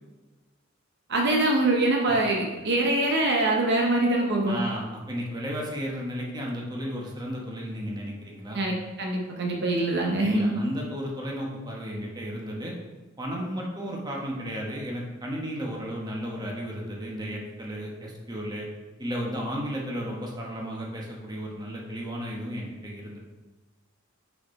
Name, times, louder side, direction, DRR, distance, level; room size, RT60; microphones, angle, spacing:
voice 1, 1.1-4.6 8.5-10.6, right 2 dB, 55° right, 0 dB, 0.8 m, -24 dB
voice 2, 4.5-8.6 10.2-12.7 13.2-18.7 19.0-23.2, equal, 20° right, -2 dB, 1.1 m, -34 dB
5.9 x 4.4 x 4.6 m, 1.2 s
head